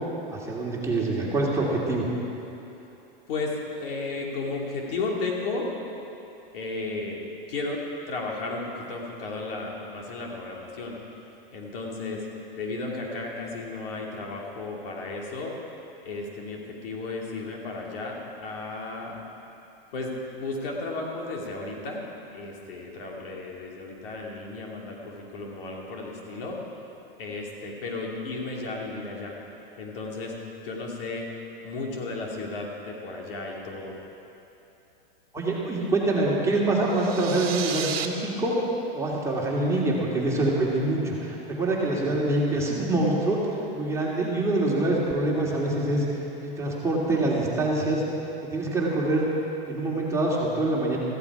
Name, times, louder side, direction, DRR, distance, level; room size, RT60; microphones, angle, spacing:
voice 1, 0.3-2.1 35.3-38.5 38.9-43.4 43.7-46.0 46.4-48.0 48.5-49.3 49.6-51.0, right 2 dB, 10° right, -5 dB, 2.7 m, -25 dB
voice 2, 3.3-5.7 6.5-11.0 11.5-12.3 12.6-15.5 16.0-19.2 19.9-22.0 22.3-26.6 27.2-29.4 29.8-31.3 31.6-34.0, left 3 dB, 70° left, -1 dB, 2.8 m, -34 dB
sound 1, 36.8-38.1, right 9 dB, 85° right, 1.2 m, -32 dB
15.0 x 14.5 x 4.9 m, 3.0 s
hypercardioid pair, 125°, 30 cm